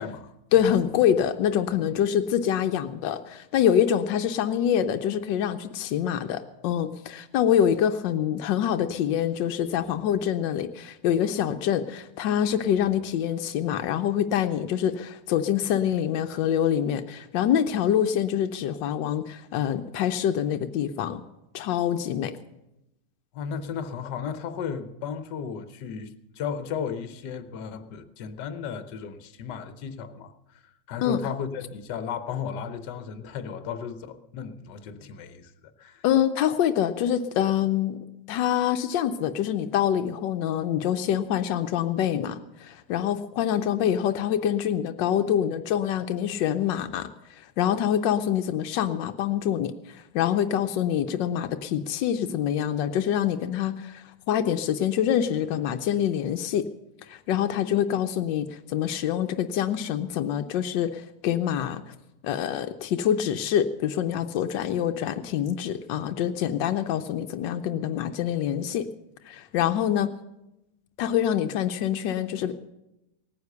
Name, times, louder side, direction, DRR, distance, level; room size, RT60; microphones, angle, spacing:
voice 1, 0.0-0.3 23.3-30.3 30.9-36.0, left 7 dB, 75° left, 10 dB, 1.5 m, -35 dB
voice 2, 0.5-21.2 21.5-22.3 31.0-31.2 36.0-38.0 38.3-47.1 47.6-56.7 57.1-61.9 62.2-68.9 69.3-70.1 71.0-72.6, left 9 dB, 90° left, 8 dB, 1.4 m, -25 dB
18.0 x 9.6 x 6.7 m, 0.92 s
omnidirectional pair, 1.9 m